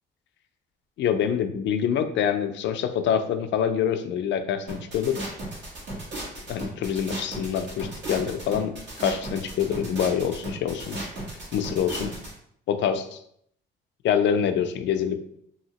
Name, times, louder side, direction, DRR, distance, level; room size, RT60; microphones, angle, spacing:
voice 1, 1.0-5.2 6.5-8.7 9.0-11.0 11.5-12.1 12.7-13.2 14.0-15.2, left 8 dB, 65° left, 8 dB, 0.4 m, -25 dB
sound 1, 4.7-12.3, right 1 dB, 65° right, 1.4 m, -35 dB
2.8 x 2.7 x 2.9 m, 0.68 s
cardioid pair, 90°, 20 cm